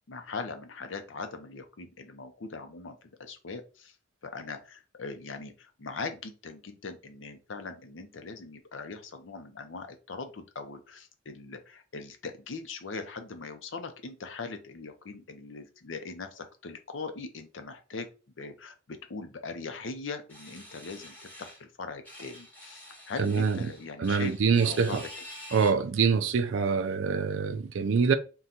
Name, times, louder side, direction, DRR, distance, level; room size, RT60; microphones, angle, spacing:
voice 1, 0.1-3.9 4.2-18.1 18.4-25.2, left 4 dB, 70° left, 0.6 m, -40 dB
sound 1, 20.3-21.6 22.1-25.7, left 1 dB, 10° left, 1.0 m, -47 dB
voice 2, 23.2-23.6 24.0-25.0 25.5-28.1, right 5 dB, 75° right, 0.4 m, -25 dB
3.8 x 2.3 x 4.2 m
head